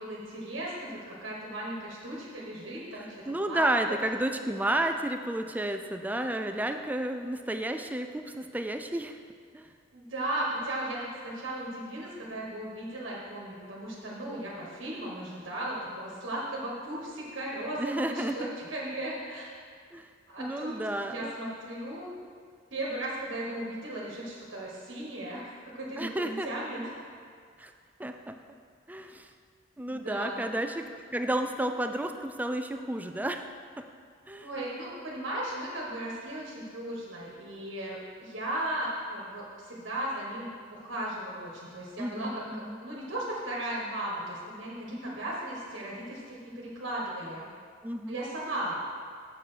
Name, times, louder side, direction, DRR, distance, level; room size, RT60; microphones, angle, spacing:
voice 1, 0.0-4.0 9.9-19.5 20.3-20.8 21.1-22.1 22.7-26.9 29.9-30.4 34.4-47.5 48.1-48.8, right 1 dB, 60° right, -4 dB, 1.4 m, -36 dB
voice 2, 3.3-9.2 9.5-9.7 17.8-18.5 19.9-20.1 20.4-21.3 26.0-26.5 27.6-27.7 28.0-28.4 28.9-29.3 29.8-30.9 31.1-33.4 34.3-34.5 42.0-42.8 44.9-45.2 47.8-48.2, right 1 dB, 10° right, 6 dB, 0.3 m, -31 dB
7.0 x 6.8 x 5.0 m, 2.1 s
head